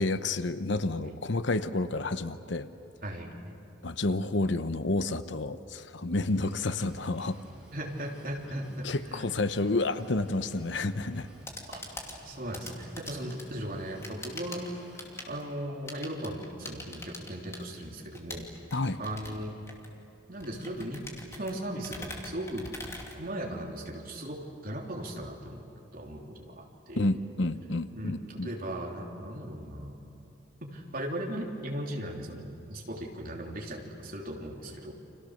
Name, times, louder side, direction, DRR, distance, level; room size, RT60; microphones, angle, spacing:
voice 1, 0.0-2.7 3.8-7.4 8.8-11.3 18.7-19.0 27.0-28.5, left 2 dB, 65° left, 11 dB, 0.9 m, -30 dB
voice 2, 3.0-3.3 7.7-9.3 11.7-11.8 12.3-14.9 15.3-18.5 19.0-19.5 20.3-21.1 21.4-22.7 23.2-25.7 25.9-27.1 27.9-29.9 30.6-34.9, right 1 dB, 45° right, 0 dB, 3.5 m, -37 dB
Drum kit / Drum, 6.2-15.4, equal, 5° right, 6.6 m, -53 dB
sound 1, 11.4-23.8, left 2 dB, 15° left, 2.5 m, -45 dB
30.0 x 26.5 x 6.6 m, 2.9 s
head